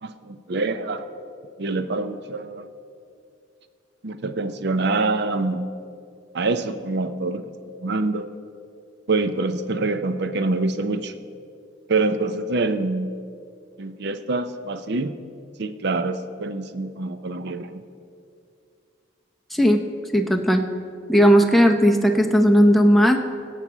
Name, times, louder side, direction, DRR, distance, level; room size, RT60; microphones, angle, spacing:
voice 1, 0.0-1.0 1.6-2.7 4.0-5.7 6.3-8.3 9.1-11.1 11.9-13.1 13.8-15.1 15.6-17.8, right 3 dB, 60° right, 10 dB, 0.6 m, -25 dB
voice 2, 19.5-19.8 20.1-20.6 21.1-23.2, equal, ahead, 2 dB, 0.7 m, -16 dB
16.5 x 5.9 x 6.1 m, 2.4 s
head